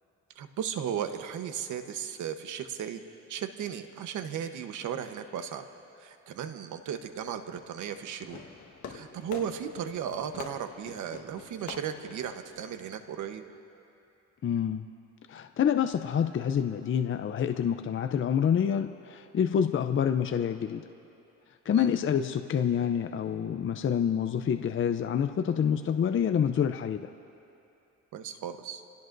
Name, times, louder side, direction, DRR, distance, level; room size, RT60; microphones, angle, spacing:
voice 1, 0.4-3.0 3.3-5.6 6.0-8.4 8.9-13.4 21.7-22.0 28.1-28.8, right 8 dB, 80° right, 8 dB, 1.1 m, -36 dB
Fireworks, 8.2-13.2, left 6 dB, 70° left, 1.6 m, -46 dB
voice 2, 14.4-14.8 15.3-20.9 21.7-27.1, left 8 dB, 40° left, 8 dB, 0.6 m, -27 dB
27.5 x 17.5 x 2.6 m, 2.7 s
cardioid pair, 90°, 30 cm